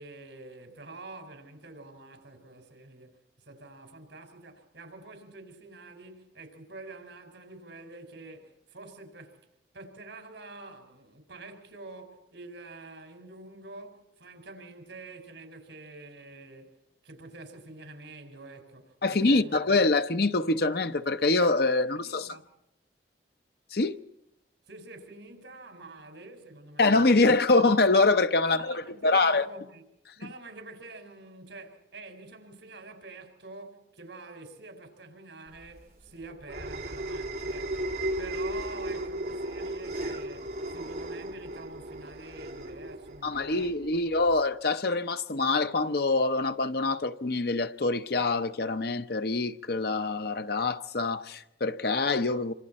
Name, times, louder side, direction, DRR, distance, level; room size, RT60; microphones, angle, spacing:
voice 1, 0.0-3.2 3.5-9.4 9.7-16.7 17.0-19.7 21.9-22.4 24.7-26.9 27.1-27.3 28.5-29.8 30.2-43.7, right 2 dB, 75° right, 5.1 m, -47 dB
voice 2, 19.0-22.4 23.7-24.0 26.8-29.5 43.2-52.5, left 3 dB, 55° left, 0.8 m, -25 dB
sound 1, 35.6-44.4, right 1 dB, 55° right, 2.6 m, -35 dB
27.0 x 26.0 x 4.3 m
head